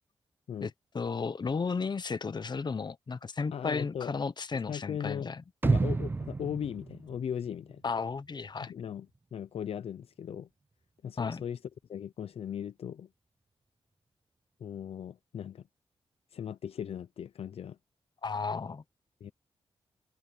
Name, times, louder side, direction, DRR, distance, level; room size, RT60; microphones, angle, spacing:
voice 1, 0.9-5.4 7.8-8.7 11.2-11.4 18.2-18.8, left 5 dB, 45° left, 1.1 m, -33 dB
voice 2, 3.5-4.1 4.7-5.3 5.6-7.8 8.6-10.5 11.0-11.6 11.9-13.1 14.6-15.6 16.3-17.8 19.2-19.3, left 8 dB, 75° left, 0.6 m, -38 dB
sound 1, 5.6-7.8 8.1-8.2, right 3 dB, 20° right, 0.3 m, -30 dB
open air
cardioid pair, 70°, 10 cm